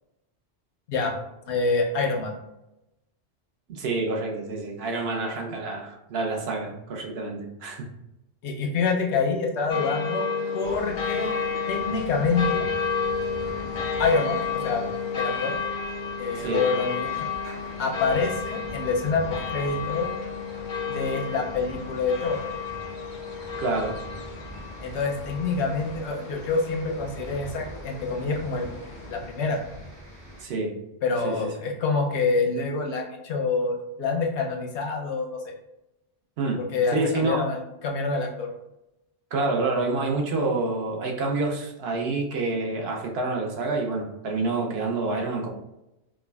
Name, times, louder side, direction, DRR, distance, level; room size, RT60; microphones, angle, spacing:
voice 1, 1.5-2.3 8.4-10.3 10.5-11.3 11.7-12.7 14.0-14.8 15.1-15.6 16.2-17.3 17.8-20.1 20.9-22.4 24.8-28.7 29.1-29.6 31.0-35.5 36.6-38.5, left 4 dB, 85° left, 1 dB, 0.9 m, -26 dB
voice 2, 3.7-7.9 16.4-16.6 23.6-23.9 30.4-30.7 31.2-31.5 36.4-36.6 36.9-37.4 39.3-45.5, right 3 dB, 70° right, 1 dB, 0.9 m, -27 dB
sound 1, 9.7-29.1, left 5 dB, 55° left, 0.6 m, -32 dB
sound 2, 10.6-30.4, right 1 dB, 40° right, 1.0 m, -43 dB
4.7 x 2.2 x 2.2 m, 0.90 s
omnidirectional pair, 1.1 m